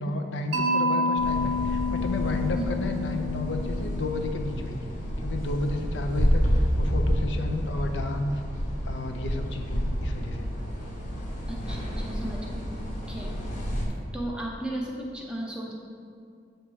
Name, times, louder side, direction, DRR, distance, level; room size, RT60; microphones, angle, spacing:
voice 1, 0.0-4.9 5.2-8.4 8.9-10.5, left 2 dB, 80° left, 5 dB, 0.5 m, -32 dB
Mallet percussion, 0.5-4.5, left 2 dB, 65° right, 0.6 m, -29 dB
sound 1, 1.2-13.9, equal, 45° left, 1.0 m, -29 dB
voice 2, 11.5-13.3 14.1-15.7, right 1 dB, 5° right, -2 dB, 0.8 m, -35 dB
7.3 x 3.0 x 4.8 m, 2.4 s
head